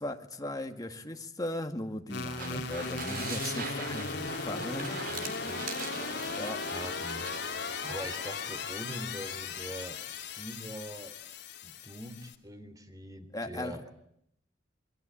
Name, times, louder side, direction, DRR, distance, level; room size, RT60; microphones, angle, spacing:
voice 1, 0.0-5.3 6.4-6.6 13.3-13.8, left 1 dB, 20° left, 2.0 m, -38 dB
sound 1, 2.1-12.4, left 4 dB, 65° left, 2.9 m, -37 dB
sound 2, 2.2-8.0, right 4 dB, 50° right, 4.3 m, -42 dB
voice 2, 5.1-5.6 6.7-7.3 7.8-10.0 10.4-11.2 11.6-13.8, equal, 20° right, 3.2 m, -43 dB
27.5 x 22.0 x 8.7 m
head